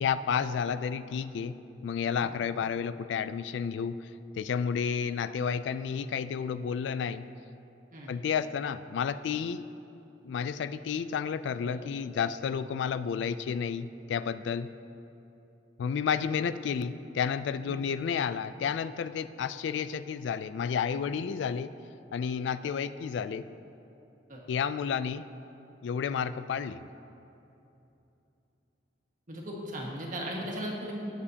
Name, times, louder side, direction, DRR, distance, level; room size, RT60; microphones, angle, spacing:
voice 1, 0.0-1.6 1.8-4.0 4.4-7.3 8.1-9.6 10.2-14.7 15.8-21.7 22.1-23.4 24.5-25.2 25.8-26.8, left 7 dB, 70° left, 13 dB, 0.3 m, -31 dB
voice 2, 29.3-30.9, equal, 45° right, -2 dB, 1.6 m, -38 dB
18.0 x 7.1 x 2.8 m, 2.9 s
head